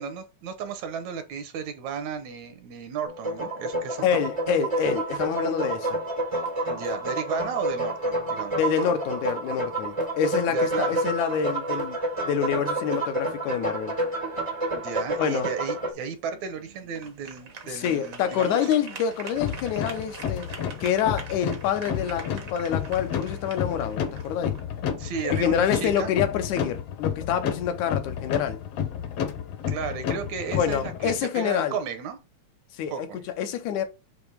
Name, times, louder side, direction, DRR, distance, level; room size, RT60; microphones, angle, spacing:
voice 1, 0.0-4.2 6.7-8.6 10.5-11.1 14.7-18.7 25.0-26.1 29.7-32.2 32.9-33.2, right 6 dB, 75° right, 2.2 m, -34 dB
sound 1, 3.0-15.9, right 1 dB, 40° right, 0.4 m, -29 dB
voice 2, 4.0-6.0 8.5-12.0 12.3-14.0 15.2-15.5 17.7-20.5 20.8-24.6 25.2-28.6 30.5-31.8 32.7-33.1 33.4-33.8, left 8 dB, 85° left, 2.2 m, -27 dB
sound 2, 15.5-25.4, right 5 dB, 60° right, 0.8 m, -45 dB
sound 3, 19.4-31.2, left 8 dB, 65° left, 1.8 m, -31 dB
7.0 x 2.9 x 4.6 m
omnidirectional pair, 3.3 m